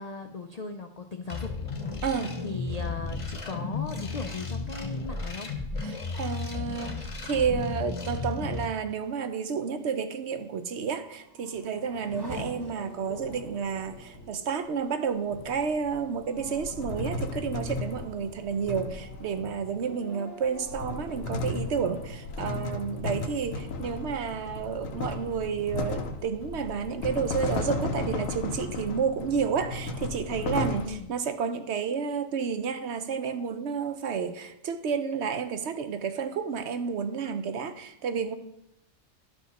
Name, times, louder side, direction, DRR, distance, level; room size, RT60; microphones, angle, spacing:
voice 1, 0.0-1.5 2.4-5.5 30.8-31.1, left 4 dB, 65° left, 0.4 m, -38 dB
sound 1, 1.3-8.7, left 3 dB, 30° left, 0.8 m, -34 dB
voice 2, 2.0-2.4 5.8-38.3, right 6 dB, 65° right, 0.9 m, -31 dB
Race car auto racing / Accelerating revving vroom, 10.8-24.0 24.4-25.1, right 1 dB, 15° right, 1.2 m, -47 dB
sound 2, 13.0-14.3 15.3-19.9 20.4-30.9, left 3 dB, 85° left, 1.1 m, -35 dB
12.0 x 5.0 x 4.0 m
omnidirectional pair, 1.4 m